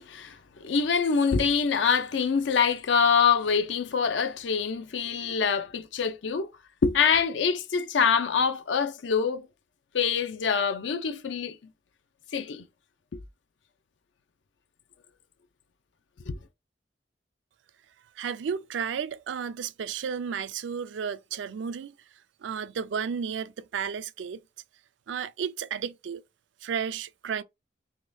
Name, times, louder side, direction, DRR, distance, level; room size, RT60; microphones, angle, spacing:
voice 1, 0.0-6.5 6.8-9.5 9.9-11.6 12.3-12.6 16.3-16.4, left 6 dB, 90° left, 0.5 m, -25 dB
voice 2, 18.2-21.9 22.4-24.4 25.1-26.2 26.6-27.4, right 7 dB, 80° right, 0.4 m, -33 dB
3.5 x 3.0 x 2.6 m
head